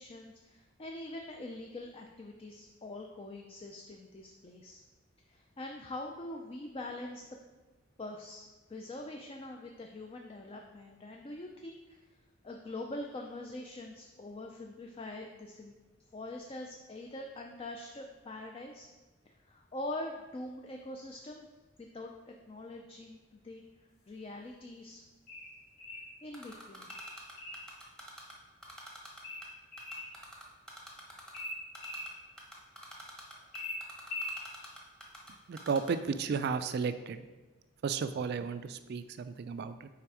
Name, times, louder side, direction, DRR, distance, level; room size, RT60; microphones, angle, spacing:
voice 1, 0.0-4.8 5.3-7.2 8.0-12.0 12.4-15.8 16.1-18.9 19.3-21.5 21.8-23.6 24.1-25.0 26.2-26.9 33.3-33.5, left 1 dB, 30° left, 2 dB, 0.4 m, -44 dB
sound 1, 25.3-26.1 26.9-27.7 29.2-30.1 31.3-32.1 33.5-34.4, left 1 dB, 45° left, 1.4 m, -41 dB
Typing, 26.3-28.3 28.6-29.5 29.8-31.4 31.7-32.1 32.4-35.3 35.6-35.9, right 1 dB, 5° left, 0.9 m, -47 dB
voice 2, 35.5-37.2 37.8-39.9, right 5 dB, 55° right, 10 dB, 0.3 m, -33 dB
5.8 x 4.3 x 4.8 m, 1.2 s
head